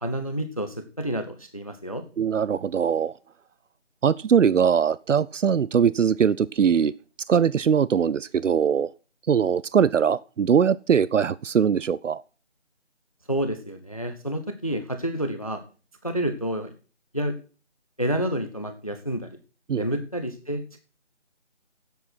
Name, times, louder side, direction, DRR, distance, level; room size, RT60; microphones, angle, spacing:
voice 1, 0.0-2.0 13.3-15.6 16.0-16.7 17.1-17.3 18.0-19.4 19.7-20.8, right 1 dB, 30° left, 0.7 m, -29 dB
voice 2, 2.2-3.1 4.0-6.9 7.3-8.9 9.3-12.2 19.7-19.8, right 7 dB, 85° right, 0.6 m, -21 dB
10.5 x 7.9 x 5.9 m
figure-of-eight pair, 175°, 36 cm